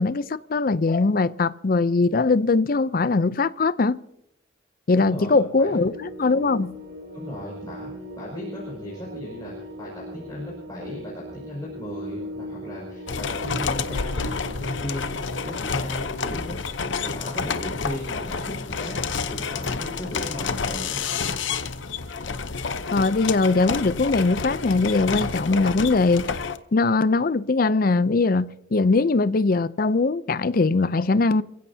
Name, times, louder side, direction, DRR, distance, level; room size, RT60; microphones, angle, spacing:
voice 1, 0.0-4.0 4.9-6.7 22.9-26.3 26.7-31.4, left 3 dB, 50° left, 0.5 m, -21 dB
voice 2, 4.9-5.8 7.1-16.6 17.0-21.0, left 1 dB, 20° left, 5.4 m, -36 dB
sound 1, 5.5-15.5, equal, 70° right, 5.0 m, -39 dB
sound 2, 13.1-26.6, left 5 dB, 70° left, 0.8 m, -29 dB
27.5 x 16.0 x 2.8 m
head